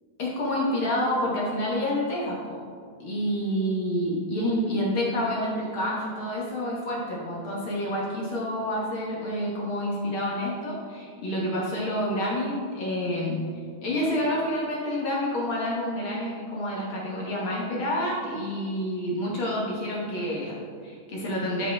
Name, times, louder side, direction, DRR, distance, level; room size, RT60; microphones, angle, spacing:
voice 1, 0.2-2.6 3.0-13.4 13.8-21.7, left 1 dB, 50° left, -4 dB, 1.7 m, -28 dB
13.0 x 5.0 x 3.5 m, 2.1 s
omnidirectional pair, 3.6 m